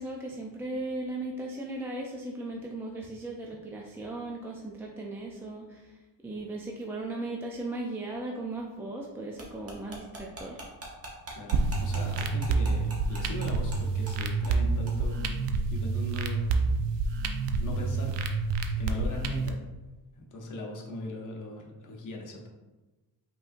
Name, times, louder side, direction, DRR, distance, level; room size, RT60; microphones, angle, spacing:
voice 1, 0.0-5.9 6.2-10.6, right 2 dB, 5° right, -1 dB, 0.4 m, -37 dB
sound 1, 9.4-13.8 14.1-14.2 14.4-14.6 14.9-15.0, right 2 dB, 35° right, 1.2 m, -41 dB
voice 2, 11.3-15.4 15.7-16.5 17.6-18.2 18.8-19.6 20.2-22.5, left 1 dB, 45° left, 0 dB, 0.9 m, -39 dB
sound 2, 11.5-19.5, right 4 dB, 80° right, 0.6 m, -28 dB
5.3 x 3.8 x 2.5 m, 1.1 s
cardioid pair, 125°, 42 cm